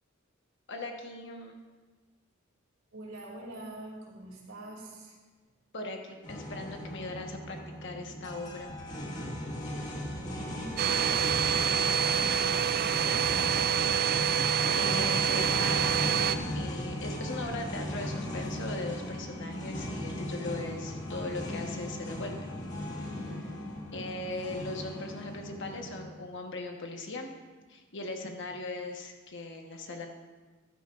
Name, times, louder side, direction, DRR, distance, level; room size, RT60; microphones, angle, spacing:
voice 1, 0.7-1.5 5.7-8.8 14.7-15.8 16.5-22.4 23.0-23.1 23.9-27.3 27.7-30.1, left 2 dB, 60° left, 3 dB, 1.3 m, -39 dB
voice 2, 2.9-5.2 10.1-11.3 11.6-12.3 13.0-13.8 23.1-23.5, right 1 dB, 85° right, -2 dB, 2.9 m, -45 dB
sound 1, 6.2-26.0, left 1 dB, 35° left, 1.8 m, -37 dB
Domestic sounds home sounds, 10.8-16.4, right 8 dB, 50° right, 0.4 m, -27 dB
14.5 x 11.5 x 2.5 m, 1.4 s
head